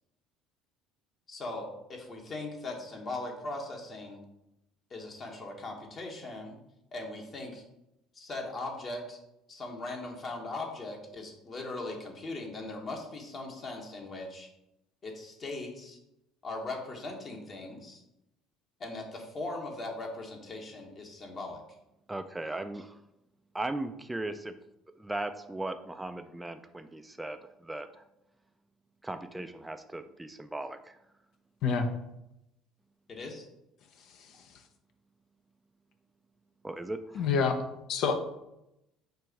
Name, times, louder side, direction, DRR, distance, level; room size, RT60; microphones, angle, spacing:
voice 1, 1.3-4.2 4.9-6.6 6.9-7.6 8.1-9.2 9.5-14.5 15.0-16.0 16.4-18.0 18.8-21.6 33.1-33.5, left 2 dB, 40° left, 1 dB, 1.2 m, -39 dB
voice 2, 22.1-23.0 23.5-24.6 24.9-28.0 29.0-31.0 36.6-37.3, right 2 dB, 10° right, 8 dB, 0.3 m, -38 dB
voice 3, 34.0-34.5 37.1-37.6 37.9-38.1, left 5 dB, 65° left, 6 dB, 0.6 m, -28 dB
4.6 x 2.6 x 4.5 m, 0.86 s
hypercardioid pair, 75°, 0 cm